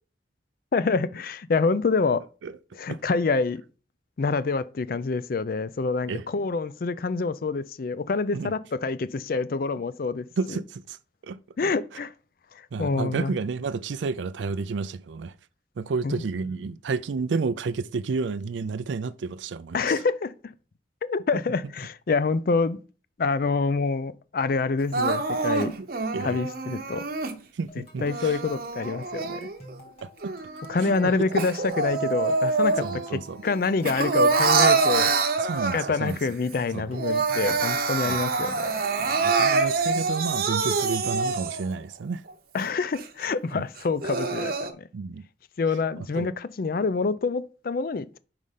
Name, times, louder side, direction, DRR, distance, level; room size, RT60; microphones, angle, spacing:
voice 1, 0.7-2.2 2.7-3.6 4.2-10.6 11.6-12.1 12.8-13.4 16.0-16.2 19.7-20.5 21.0-22.8 23.2-25.7 26.2-27.0 28.0-29.5 30.7-32.9 33.1-35.1 35.7-38.8 42.5-44.9 45.6-48.2, left 4 dB, 55° left, 0.4 m, -26 dB
voice 2, 10.4-11.0 11.2-11.4 12.7-15.3 15.8-19.9 25.8-25.9 26.1-26.4 27.5-28.4 30.0-30.3 30.8-31.1 32.8-33.4 35.4-36.2 36.7-36.9 38.0-38.2 39.0-42.2 43.5-43.6 44.9-45.2 46.0-46.3, right 4 dB, 90° right, 0.4 m, -31 dB
Crying sobbing, 24.9-27.3 28.0-29.8 30.2-33.1 33.4-36.1 36.5-36.6 36.9-41.8 42.3-42.4 42.9-43.0 43.8-44.7, right 4 dB, 55° right, 0.8 m, -25 dB
sound 1, 27.7-40.0, right 1 dB, 35° left, 2.5 m, -50 dB
5.3 x 4.9 x 5.6 m
head